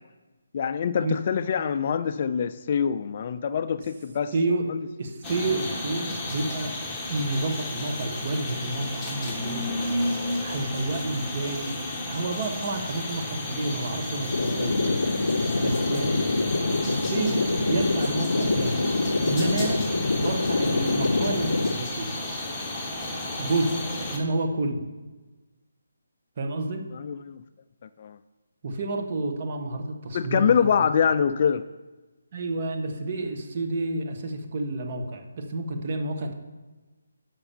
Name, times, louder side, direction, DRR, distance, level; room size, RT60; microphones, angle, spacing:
voice 1, 0.5-4.3 4.7-4.8 26.9-27.4 28.0-28.2 30.1-31.6, left 7 dB, 35° left, 12 dB, 0.3 m, -24 dB
voice 2, 4.3-4.7 5.0-6.7 7.1-9.7 10.1-14.9 15.6-16.2 16.8-18.8 19.2-19.9 20.1-22.1 23.4-23.8 24.1-24.8 26.4-26.8 28.6-30.8 32.3-36.3, right 2 dB, 35° right, 4 dB, 1.3 m, -30 dB
sound 1, 5.2-24.2, left 1 dB, 10° left, 1.3 m, -32 dB
sound 2, 14.3-21.7, left 3 dB, 85° left, 0.6 m, -26 dB
6.9 x 5.8 x 7.0 m, 1.2 s
hypercardioid pair, 165°, 0 cm